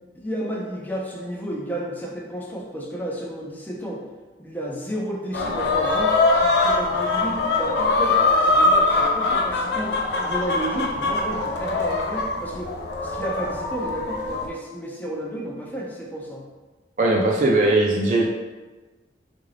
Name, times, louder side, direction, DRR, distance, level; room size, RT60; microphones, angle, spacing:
voice 1, 0.1-4.0 4.4-12.7 13.0-16.5, equal, 10° left, -2 dB, 0.4 m, -32 dB
sound 1, 5.3-14.5, left 3 dB, 75° left, 0.5 m, -22 dB
voice 2, 17.0-18.3, right 2 dB, 45° right, -2 dB, 0.4 m, -19 dB
3.8 x 2.5 x 3.2 m, 1.2 s
head